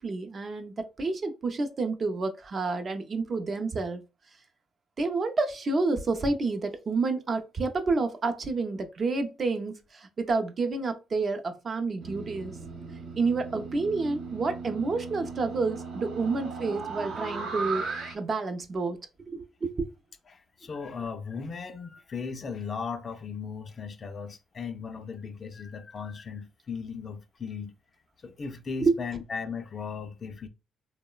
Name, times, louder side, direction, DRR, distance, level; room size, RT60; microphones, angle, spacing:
voice 1, 0.0-4.0 5.0-12.5 13.2-17.9 18.1-19.0 19.3-19.9 28.8-28.9, right 3 dB, 40° right, 0.4 m, -29 dB
sound 1, 12.0-18.1, right 4 dB, 75° right, 0.8 m, -37 dB
voice 2, 20.3-27.7 28.2-30.5, left 5 dB, 45° left, 0.3 m, -37 dB
3.0 x 2.0 x 2.2 m
cardioid pair, 90°, 0 cm